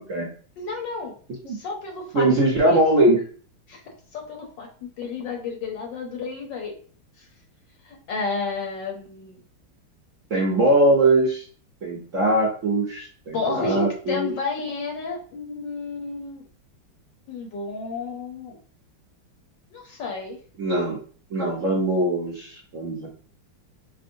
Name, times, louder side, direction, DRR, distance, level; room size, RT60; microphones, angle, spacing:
voice 1, 0.6-1.1 1.5-2.3 2.7-2.8 3.7-3.8 4.1-6.7 7.2-7.3 7.8-9.4 13.3-16.4 17.3-18.6 19.7-20.4, left 4 dB, 65° left, 1 dB, 1.3 m, -31 dB
voice 2, 2.1-3.2 10.3-11.4 11.8-14.3 20.6-21.0 21.3-23.1, right 1 dB, 55° right, -4 dB, 0.9 m, -21 dB
5.6 x 2.1 x 2.6 m, 0.42 s
omnidirectional pair, 2.3 m